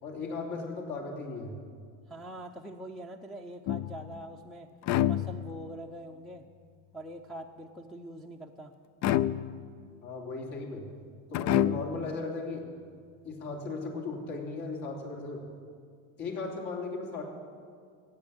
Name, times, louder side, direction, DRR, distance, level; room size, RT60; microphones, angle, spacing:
voice 1, 0.0-1.6 10.0-10.9 11.3-12.6 13.2-15.4 16.2-17.2, left 3 dB, 60° left, -1 dB, 3.4 m, -36 dB
voice 2, 2.1-4.7 5.0-6.4 6.9-8.7, right 1 dB, ahead, -1 dB, 0.6 m, -44 dB
sound 1, 3.7-4.2 4.8-5.8 9.0-9.8 11.3-12.1, left 12 dB, 40° left, 0.4 m, -28 dB
15.5 x 8.6 x 8.8 m, 2.1 s
supercardioid pair, 115°, 43 cm